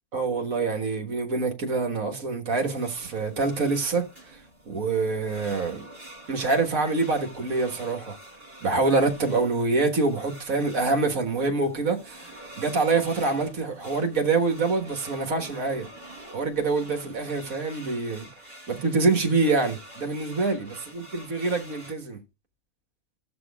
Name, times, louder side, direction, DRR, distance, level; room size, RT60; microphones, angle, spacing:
voice 1, 0.1-4.1 4.7-5.9 6.3-8.2 8.6-15.9 16.3-18.3 18.7-22.2, right 3 dB, 65° right, 1.9 m, -25 dB
sound 1, 2.5-21.9, right 1 dB, 40° right, 4.3 m, -47 dB
16.5 x 6.2 x 2.3 m
omnidirectional pair, 1.5 m